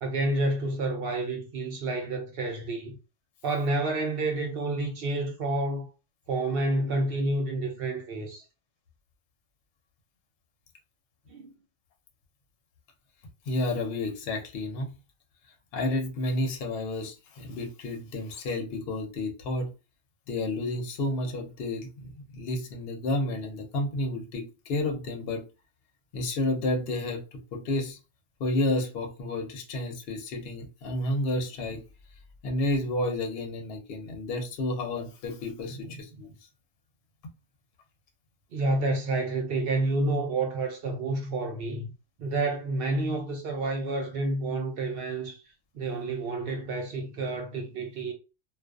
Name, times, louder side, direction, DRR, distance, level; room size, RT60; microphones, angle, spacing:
voice 1, 0.0-3.0 3.4-5.9 6.3-8.4 11.3-11.5 35.8-36.0 38.5-41.9 42.2-45.4 45.7-48.1, right 2 dB, 60° right, 0.6 m, -29 dB
voice 2, 13.5-14.9 15.7-19.7 20.3-25.4 26.1-27.2 27.5-28.0 28.4-31.8 32.4-36.3, left 2 dB, 60° left, 0.8 m, -31 dB
2.5 x 2.2 x 2.2 m
omnidirectional pair, 1.3 m